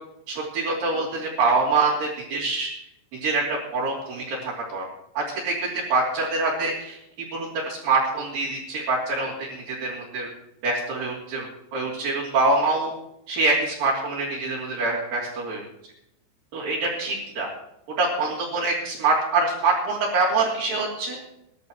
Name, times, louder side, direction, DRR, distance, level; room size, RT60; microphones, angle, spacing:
voice 1, 0.3-2.7 3.2-4.9 5.1-7.0 7.3-10.3 10.6-12.9 13.3-15.6 16.5-17.5 18.0-21.2, right 3 dB, 55° right, -7 dB, 4.4 m, -25 dB
22.5 x 11.5 x 3.0 m, 0.82 s
omnidirectional pair, 5.2 m